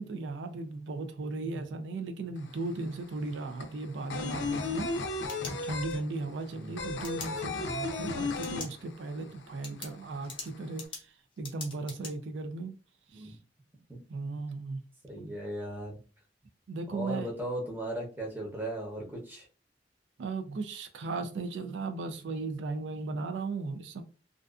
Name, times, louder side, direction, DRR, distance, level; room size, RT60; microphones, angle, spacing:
voice 1, 0.0-5.2 5.5-12.8 13.1-13.4 14.1-14.8 15.2-15.4 16.7-17.3 20.2-24.0, right 3 dB, 85° right, 0.4 m, -36 dB
sound 1, 2.4-2.5 2.7-9.3 9.6-9.7 10.0-10.8, left 3 dB, 90° left, 0.4 m, -34 dB
sound 2, 4.9-6.1 7.0-7.3 8.3-8.7 9.1-9.2 9.6-12.1, left 4 dB, 25° left, 0.6 m, -43 dB
voice 2, 15.1-16.0 16.9-19.5, right 1 dB, 10° right, 0.7 m, -37 dB
2.4 x 2.3 x 2.4 m
head